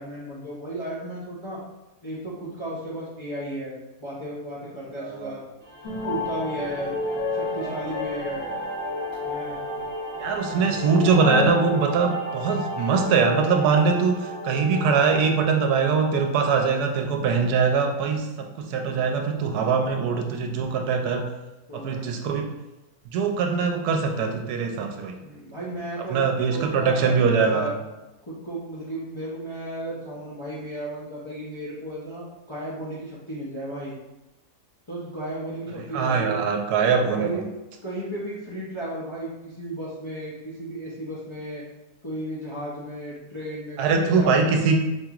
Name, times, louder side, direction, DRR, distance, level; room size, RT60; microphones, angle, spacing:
voice 1, 0.0-1.6 2.0-5.4 6.0-6.9 7.3-8.5 9.2-9.6 21.7-22.1 25.2-27.7 28.2-33.9 34.9-36.4 37.1-37.4 37.8-41.6 42.0-44.5, right 1 dB, 45° left, -8 dB, 0.3 m, -34 dB
voice 2, 5.0-5.3 10.2-21.2 21.7-22.5 23.1-25.1 26.1-27.7 35.9-37.4 43.8-44.8, right 5 dB, 80° right, 3 dB, 1.1 m, -22 dB
sound 1, 5.6-16.7, equal, 60° right, 1.2 m, -34 dB
sound 2, 5.8-11.5, left 3 dB, 80° left, 1.4 m, -32 dB
4.6 x 2.9 x 2.4 m, 1.0 s
omnidirectional pair, 1.7 m